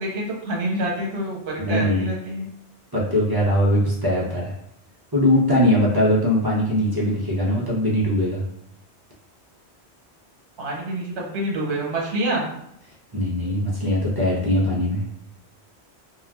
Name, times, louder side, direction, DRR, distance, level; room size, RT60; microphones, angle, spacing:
voice 1, 0.0-2.5 10.6-12.4, right 1 dB, 80° right, -2 dB, 1.0 m, -27 dB
voice 2, 1.6-2.1 2.9-4.5 5.1-8.4 13.1-15.0, left 1 dB, 35° right, -6 dB, 0.4 m, -21 dB
2.4 x 2.2 x 3.3 m, 0.74 s
omnidirectional pair, 1.1 m